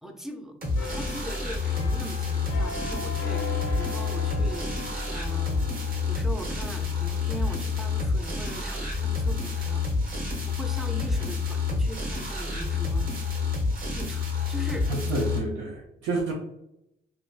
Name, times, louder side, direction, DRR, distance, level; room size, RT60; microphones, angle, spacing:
voice 1, 0.0-4.7 5.1-5.6 6.1-9.8 10.5-13.1 13.9-14.9, equal, ahead, 4 dB, 0.5 m, -40 dB
sound 1, 0.6-15.4, left 4 dB, 45° right, 1.2 m, -28 dB
sound 2, 0.8-12.3 12.7-13.0, left 2 dB, 75° left, 0.6 m, -41 dB
voice 2, 14.9-16.3, right 3 dB, 85° right, -1 dB, 0.6 m, -29 dB
3.4 x 2.3 x 2.4 m, 0.83 s
cardioid pair, 90°, 20 cm